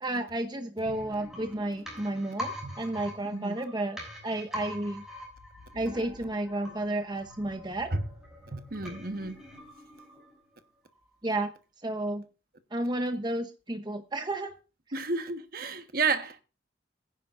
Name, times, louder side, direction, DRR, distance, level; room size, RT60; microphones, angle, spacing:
voice 1, 0.0-5.0 5.7-7.9 11.2-11.5 11.8-12.2 12.7-14.5, right 1 dB, 25° right, 0.9 m, -32 dB
sound 1, 0.9-10.6 10.9-11.0, equal, 5° right, 6.7 m, -44 dB
voice 2, 3.2-3.6 7.9-8.1 8.5-9.4 14.9-16.4, right 4 dB, 50° right, 1.3 m, -31 dB
21.5 x 10.0 x 2.5 m
head